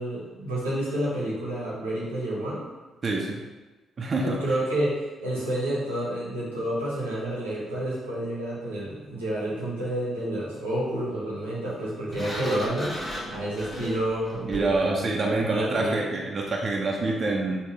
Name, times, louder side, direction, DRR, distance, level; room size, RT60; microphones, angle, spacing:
voice 1, 0.0-2.6 4.2-12.9 13.3-16.2, right 1 dB, 90° right, -7 dB, 0.8 m, -29 dB
voice 2, 3.0-3.4 4.0-4.4 14.5-17.6, right 3 dB, 45° right, -1 dB, 0.4 m, -26 dB
Sliding door, 12.1-14.9, equal, 15° left, 1.4 m, -36 dB
3.7 x 2.1 x 3.5 m, 1.2 s
hypercardioid pair, 40°, 0 cm